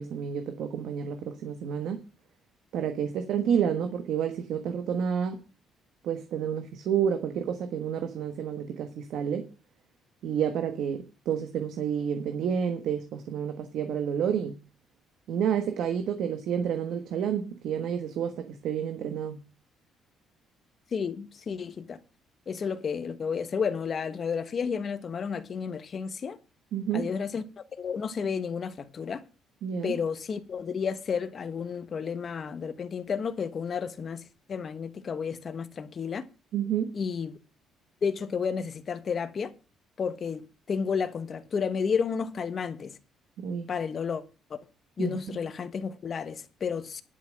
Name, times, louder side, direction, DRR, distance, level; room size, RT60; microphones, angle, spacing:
voice 1, 0.0-2.0 2.7-5.4 6.0-9.5 10.2-14.6 15.3-19.4 26.7-27.0 29.6-29.9 36.5-36.9 43.4-43.7 45.0-45.2, right 8 dB, 70° right, 1.3 m, -29 dB
voice 2, 20.9-22.0 22.5-26.4 26.9-27.4 27.8-29.2 29.8-34.2 34.5-36.2 36.9-37.4 38.0-39.5 40.0-43.0 43.7-44.2 44.5-44.6 45.0-47.0, left 6 dB, 35° left, 1.2 m, -31 dB
11.0 x 5.8 x 7.6 m
cardioid pair, 140°, 0 cm